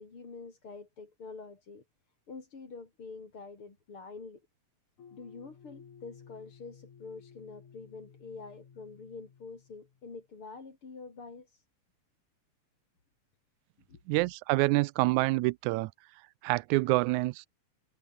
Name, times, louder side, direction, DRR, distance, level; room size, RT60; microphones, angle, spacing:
voice 1, 0.0-1.8 2.3-4.4 5.1-11.6 13.9-14.0, left 4 dB, 45° left, 4.8 m, -46 dB
sound 1, 5.0-10.2, left 7 dB, 80° left, 4.5 m, -55 dB
voice 2, 14.1-15.9 16.4-17.5, right 21 dB, 85° right, 1.9 m, -27 dB
omnidirectional pair, 3.4 m